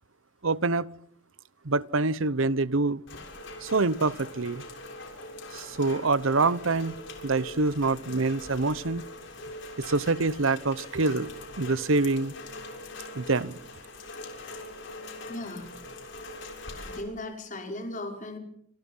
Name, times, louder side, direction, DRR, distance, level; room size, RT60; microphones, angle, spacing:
voice 1, 0.4-0.9 1.6-3.0 3.6-4.6 5.5-6.9 7.2-9.0 9.8-11.3 11.6-12.3 13.2-13.6, right 3 dB, 70° right, 0.9 m, -26 dB
Rain, 3.1-17.0, left 2 dB, 60° left, 6.8 m, -42 dB
voice 2, 15.3-15.7 16.8-18.4, left 2 dB, 35° left, 5.5 m, -37 dB
28.5 x 27.0 x 5.6 m
head